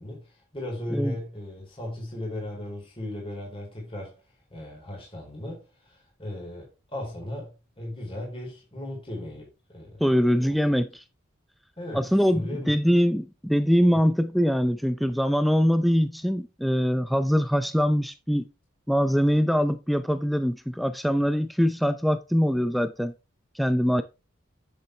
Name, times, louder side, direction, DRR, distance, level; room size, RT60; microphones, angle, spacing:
voice 1, 0.0-4.2 4.5-10.0 10.4-10.6 11.8-12.1 12.3-12.7, left 1 dB, 25° left, 4.1 m, -36 dB
voice 2, 10.0-11.0 11.9-18.5 18.9-23.1 23.6-24.0, equal, ahead, 0.5 m, -23 dB
10.0 x 7.2 x 3.3 m
head